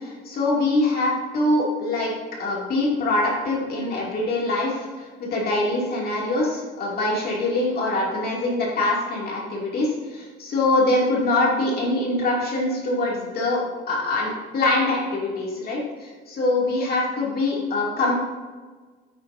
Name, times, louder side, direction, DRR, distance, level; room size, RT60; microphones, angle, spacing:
voice 1, 0.0-13.6 13.9-18.1, left 2 dB, 45° left, -3 dB, 2.6 m, -24 dB
9.3 x 9.2 x 2.7 m, 1.4 s
cardioid pair, 140°, 21 cm